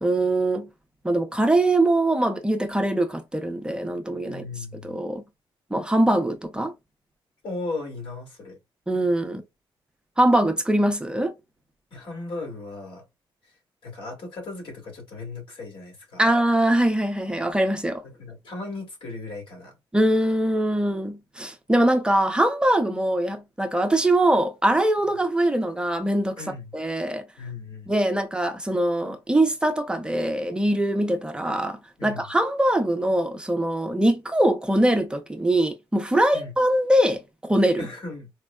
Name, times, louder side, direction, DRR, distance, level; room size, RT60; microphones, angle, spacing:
voice 1, 0.0-0.7 1.0-4.4 4.8-5.2 5.7-6.7 8.9-9.4 10.2-11.4 16.2-18.0 19.9-26.4 26.7-27.2 27.9-37.9, right 1 dB, 10° right, 0.5 m, -22 dB
voice 2, 4.3-5.0 7.4-8.6 11.9-13.0 13.4-13.5 13.8-16.3 18.0-19.8 26.4-26.8 27.4-27.9 32.0-32.2 36.3-36.5 37.8-38.3, left 3 dB, 70° left, 2.0 m, -36 dB
4.2 x 2.1 x 2.2 m
cardioid pair, 125°, 9 cm